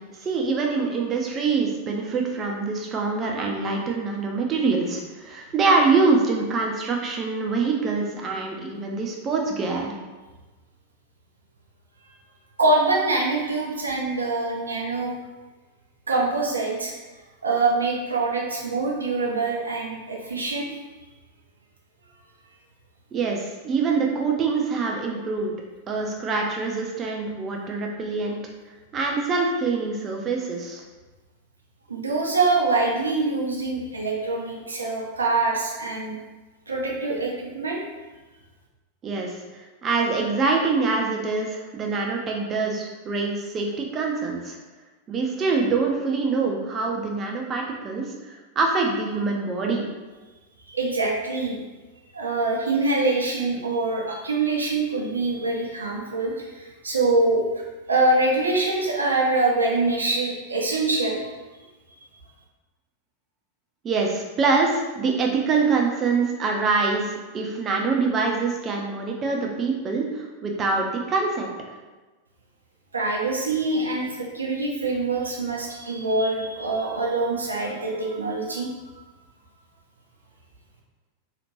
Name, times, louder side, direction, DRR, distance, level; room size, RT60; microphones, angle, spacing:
voice 1, 0.0-9.9 23.1-25.5 25.9-28.4 28.9-30.8 39.0-44.6 45.1-49.9 63.8-71.5, right 4 dB, 25° right, 0 dB, 0.5 m, -25 dB
voice 2, 12.6-15.1 16.1-16.9 17.4-20.7 31.9-36.2 36.7-37.8 50.7-51.6 52.1-57.6 57.9-61.2 62.0-62.1 72.9-78.7, right 3 dB, 75° right, -1 dB, 0.6 m, -24 dB
2.9 x 2.4 x 3.0 m, 1.2 s
figure-of-eight pair, 90°, 0 cm